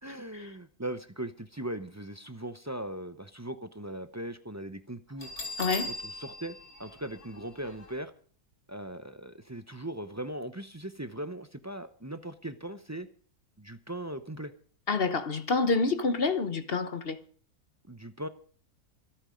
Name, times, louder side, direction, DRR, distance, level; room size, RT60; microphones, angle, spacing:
voice 1, 0.0-5.3 5.9-8.1 8.7-13.1 13.6-14.5 17.9-18.3, right 1 dB, 20° right, 0.4 m, -39 dB
Bell, 5.2-7.9, left 2 dB, 70° left, 4.9 m, -40 dB
voice 2, 5.6-5.9 14.9-17.2, left 4 dB, 45° left, 1.1 m, -28 dB
25.0 x 8.9 x 5.2 m
omnidirectional pair, 1.6 m